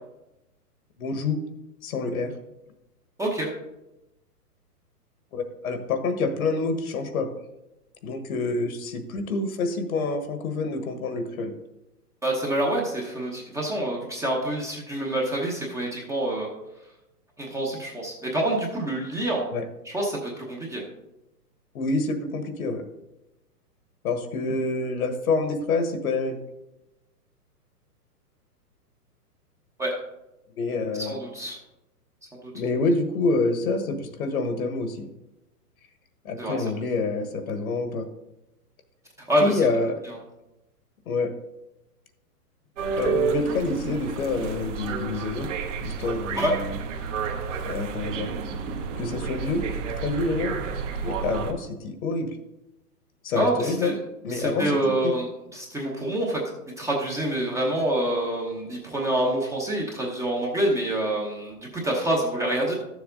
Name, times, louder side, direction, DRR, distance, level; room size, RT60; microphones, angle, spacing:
voice 1, 1.0-1.4 1.8-2.3 5.3-7.3 8.0-11.5 19.5-19.7 21.7-22.8 24.0-26.4 30.6-31.1 32.5-35.1 36.2-38.1 39.4-40.0 41.0-41.3 43.0-45.5 45.8-46.7 47.6-48.3 49.0-49.6 50.0-50.6 51.0-52.4 53.2-53.9 54.2-54.7 55.0-55.1, left 3 dB, 60° left, 8 dB, 1.5 m, -27 dB
voice 2, 12.2-16.5 17.4-19.4 19.8-20.8 29.8-29.9 31.1-31.6 32.4-32.5 36.4-36.6 39.3-39.6 40.1-40.2 46.4-46.5 53.4-53.9 54.3-55.3 55.5-56.4 56.8-62.7, right 1 dB, 5° right, -2 dB, 0.9 m, -26 dB
sound 1, 42.8-51.5, right 5 dB, 50° right, 1.4 m, -30 dB
12.5 x 7.1 x 3.8 m, 0.95 s
hypercardioid pair, 140°, 47 cm